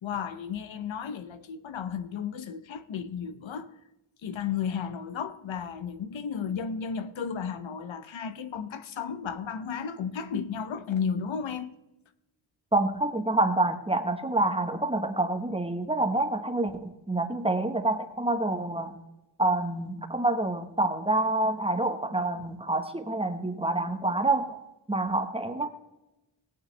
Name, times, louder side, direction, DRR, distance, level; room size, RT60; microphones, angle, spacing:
voice 1, 0.0-3.7 4.2-11.8, left 7 dB, 85° left, 0.9 m, -33 dB
voice 2, 12.7-19.0 19.4-24.6 24.9-25.7, right 2 dB, 15° right, 1.2 m, -27 dB
17.5 x 9.2 x 3.3 m
wide cardioid pair, 85°, 45 cm